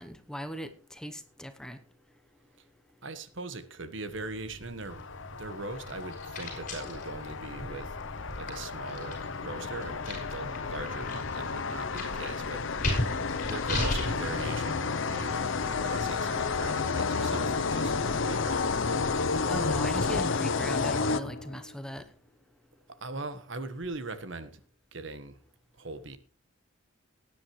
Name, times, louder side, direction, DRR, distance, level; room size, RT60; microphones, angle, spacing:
voice 1, 0.0-1.8 19.5-22.0, equal, 5° left, 9 dB, 0.9 m, -38 dB
voice 2, 3.0-5.0 5.4-7.9 8.4-12.9 13.5-17.9 18.2-18.7 22.9-24.6 24.9-25.4 25.8-26.2, right 3 dB, 60° right, 12 dB, 1.3 m, -40 dB
sound 1, 4.1-21.0, left 1 dB, 35° left, 5.6 m, -39 dB
sound 2, 4.9-21.7, left 4 dB, 65° left, 0.7 m, -31 dB
18.5 x 10.0 x 3.2 m, 0.41 s
head